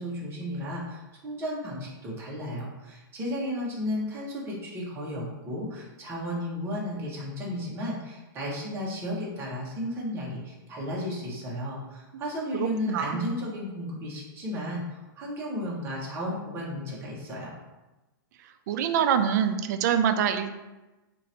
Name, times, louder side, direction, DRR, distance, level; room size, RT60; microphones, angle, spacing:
voice 1, 0.0-17.6, left 1 dB, 20° right, -4 dB, 1.0 m, -34 dB
voice 2, 12.5-13.4 18.7-20.6, right 8 dB, 50° right, 8 dB, 0.4 m, -25 dB
2.9 x 2.5 x 4.2 m, 1.1 s
hypercardioid pair, 150°, 12 cm